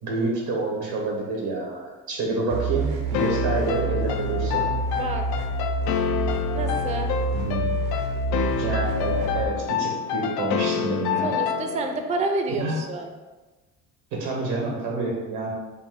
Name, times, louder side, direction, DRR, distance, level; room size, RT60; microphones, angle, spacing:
voice 1, 0.0-4.7 7.3-7.7 8.6-11.3 12.5-12.8 14.1-15.5, right 2 dB, 90° right, -1 dB, 1.3 m, -28 dB
sound 1, 2.5-9.4, right 2 dB, 70° right, 0.7 m, -28 dB
sound 2, 3.1-12.0, left 7 dB, 80° left, 0.5 m, -28 dB
voice 2, 6.5-7.1 11.2-13.1, right 3 dB, 20° right, 5 dB, 0.4 m, -28 dB
4.2 x 2.5 x 3.7 m, 1.2 s
supercardioid pair, 85°, 38 cm